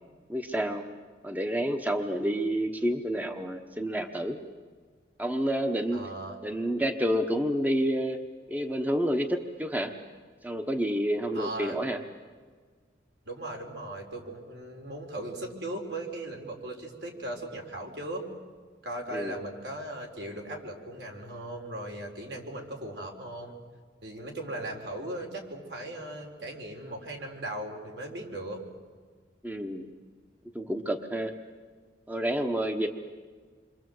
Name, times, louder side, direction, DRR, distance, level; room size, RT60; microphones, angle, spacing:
voice 1, 0.3-0.8 1.2-4.4 5.2-6.0 6.4-8.2 8.5-9.9 10.4-12.0 19.1-19.4 29.4-29.8 30.5-31.3 32.1-32.9, equal, 10° right, 6 dB, 1.0 m, -29 dB
voice 2, 5.9-6.4 11.3-11.8 13.2-18.3 18.8-23.6 24.0-28.6, right 1 dB, 70° right, 1 dB, 4.4 m, -38 dB
28.0 x 24.0 x 7.9 m, 1.5 s
head